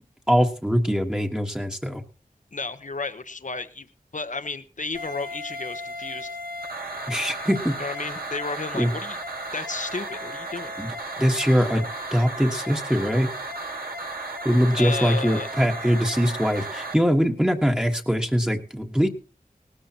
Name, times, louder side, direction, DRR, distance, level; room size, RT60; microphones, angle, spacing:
voice 1, 0.3-2.0 7.1-7.8 8.7-8.9 10.8-10.9 11.2-13.3 14.4-19.1, equal, 5° right, 2 dB, 1.4 m, -22 dB
voice 2, 2.5-3.9 4.1-6.3 7.8-9.2 9.5-10.7 14.8-15.5, left 3 dB, 60° left, 10 dB, 1.0 m, -32 dB
sound 1, 4.9-16.9, right 1 dB, 85° right, 1.9 m, -34 dB
18.5 x 13.5 x 2.9 m, 0.35 s
wide cardioid pair, 45°, 15 cm